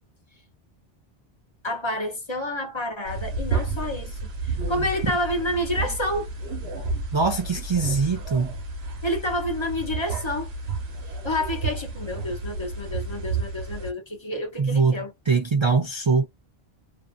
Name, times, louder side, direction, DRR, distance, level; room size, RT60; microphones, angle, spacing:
voice 1, 1.6-6.3 9.0-10.5 11.1-15.1, left 1 dB, 30° left, 0.8 m, -29 dB
sound 1, 3.0-13.9, right 3 dB, 75° right, 1.1 m, -31 dB
voice 2, 7.1-8.5 14.6-16.3, right 4 dB, 50° right, 0.3 m, -22 dB
2.7 x 2.4 x 2.3 m
omnidirectional pair, 1.1 m